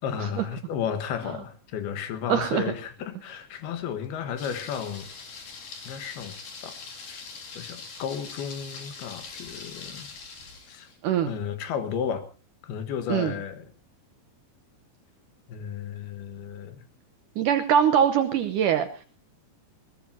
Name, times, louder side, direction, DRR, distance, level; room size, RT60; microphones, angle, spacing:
voice 1, 0.0-5.1 5.8-6.4 6.6-6.7 7.1-7.3 7.5-10.1 10.7-10.9 11.2-12.3 12.6-13.7 15.5-16.8, left 8 dB, 85° left, 10 dB, 3.4 m, -33 dB
voice 2, 2.3-2.7 11.0-11.3 13.1-13.3 17.4-19.1, right 9 dB, 70° right, 9 dB, 2.2 m, -23 dB
Thunder, 4.4-11.0, left 4 dB, 60° left, 5.0 m, -42 dB
21.5 x 20.0 x 2.8 m, 0.34 s
omnidirectional pair, 4.3 m